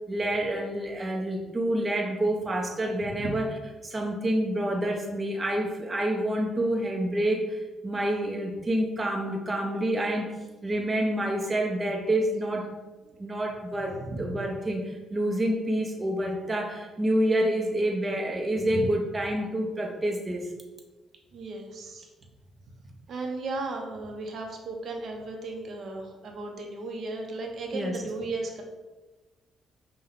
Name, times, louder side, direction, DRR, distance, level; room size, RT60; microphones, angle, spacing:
voice 1, 0.1-3.5 3.8-10.3 10.6-12.7 13.2-20.5 27.7-28.0, right 1 dB, 25° right, 1 dB, 0.6 m, -28 dB
voice 2, 14.0-14.4 21.3-22.1 23.1-28.6, right 2 dB, 60° right, 2 dB, 0.7 m, -35 dB
5.5 x 2.2 x 3.5 m, 1.2 s
cardioid pair, 90°, 0 cm